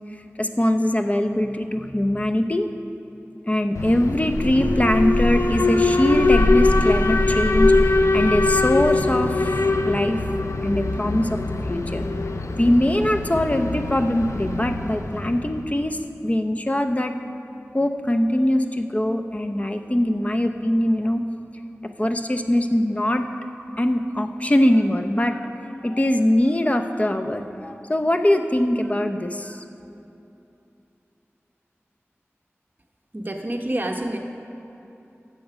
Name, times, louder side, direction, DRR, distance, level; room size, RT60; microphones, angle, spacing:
voice 1, 0.4-2.7 3.5-10.2 10.6-11.4 11.7-12.0 12.6-17.1 17.7-21.2 22.0-23.3 23.8-25.5 25.8-29.6, left 1 dB, 30° left, 6 dB, 0.7 m, -22 dB
Alarm, 3.7-15.8, left 2 dB, 90° left, 0.5 m, -22 dB
voice 2, 33.1-34.2, right 1 dB, 40° right, 2 dB, 1.1 m, -27 dB
13.5 x 7.7 x 5.0 m, 2.9 s
wide cardioid pair, 60°, 5 cm